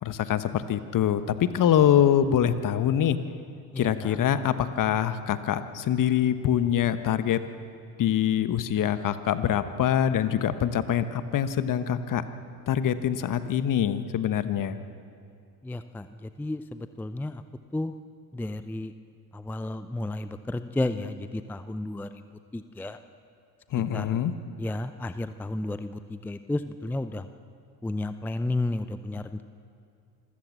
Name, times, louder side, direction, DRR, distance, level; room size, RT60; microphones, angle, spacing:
voice 1, 0.0-3.2 3.8-7.5 8.0-12.2 12.7-14.8 23.7-24.3, left 10 dB, 40° left, 12 dB, 1.2 m, -24 dB
voice 2, 3.7-4.2 15.6-17.4 17.7-17.9 18.3-18.9 19.3-22.2 22.5-23.0 23.9-24.2 24.6-27.3 27.8-29.4, left 2 dB, 5° left, 11 dB, 0.6 m, -32 dB
26.5 x 15.0 x 7.4 m, 2.4 s
hypercardioid pair, 65°, 48 cm